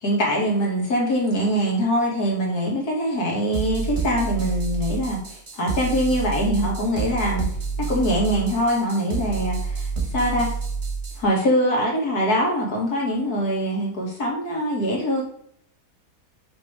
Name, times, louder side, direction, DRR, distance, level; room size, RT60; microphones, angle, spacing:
voice 1, 0.0-7.5 7.8-10.5 11.2-15.2, equal, 80° left, -2 dB, 2.4 m, -23 dB
sound 1, 3.5-11.2, right 4 dB, 30° right, 1.0 m, -28 dB
5.8 x 5.7 x 3.2 m, 0.67 s
omnidirectional pair, 1.6 m